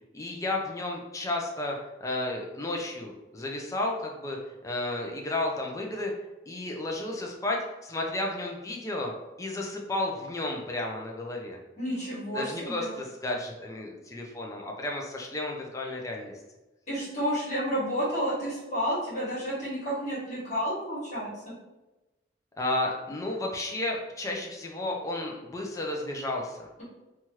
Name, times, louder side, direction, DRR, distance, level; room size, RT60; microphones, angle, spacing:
voice 1, 0.1-6.1 6.5-9.1 9.4-11.6 12.3-16.3 22.6-26.7, left 2 dB, 15° left, 0 dB, 0.4 m, -32 dB
voice 2, 11.8-12.9 16.9-21.5, equal, 40° left, -8 dB, 1.4 m, -31 dB
2.8 x 2.3 x 3.1 m, 1.1 s
head